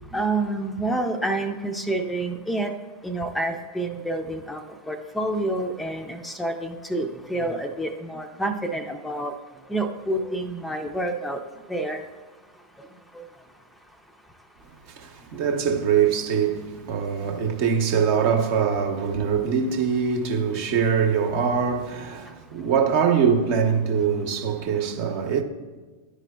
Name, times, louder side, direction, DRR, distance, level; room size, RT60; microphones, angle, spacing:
voice 1, 0.1-2.7 3.0-4.6 4.9-9.3 9.7-11.4 11.7-12.0 13.1-13.2, right 2 dB, 5° left, 0.5 m, -28 dB
voice 2, 14.9-25.4, right 7 dB, 50° right, 0.9 m, -23 dB
11.5 x 4.8 x 2.3 m
figure-of-eight pair, 90°, 0 cm